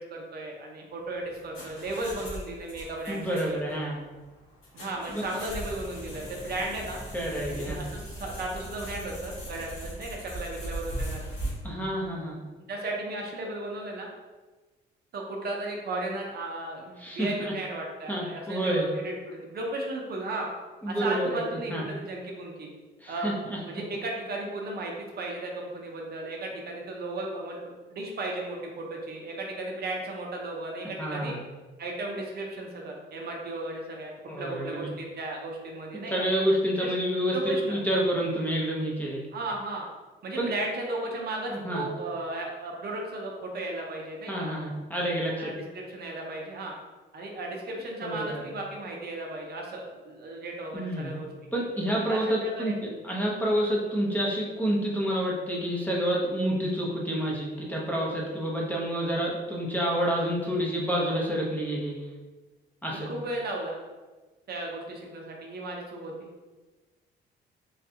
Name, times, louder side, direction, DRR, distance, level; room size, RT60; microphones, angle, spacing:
voice 1, 0.0-3.6 4.7-7.0 7.5-11.3 12.7-14.1 15.1-20.5 20.9-22.7 23.1-23.3 23.7-31.3 31.8-34.1 34.4-36.1 36.8-36.9 37.3-37.8 39.3-39.9 40.2-44.5 45.4-46.7 47.1-51.3 52.1-52.8 62.9-63.8 64.5-66.3, right 2 dB, 55° right, -1 dB, 0.6 m, -35 dB
sound 1, 1.1-11.5, right 1 dB, 85° left, 1.3 m, -39 dB
voice 2, 3.1-4.0 5.1-5.2 7.1-7.8 11.6-12.4 17.0-17.5 18.1-18.9 20.8-21.8 23.0-23.6 31.0-31.4 34.3-34.8 36.1-39.2 40.4-40.5 41.5-41.9 44.3-45.5 48.0-48.5 50.7-51.1 51.5-52.7 53.0-61.9 62.8-63.1, equal, 10° left, -4 dB, 0.7 m, -28 dB
3.2 x 2.3 x 2.7 m, 1.3 s
cardioid pair, 90°, 20 cm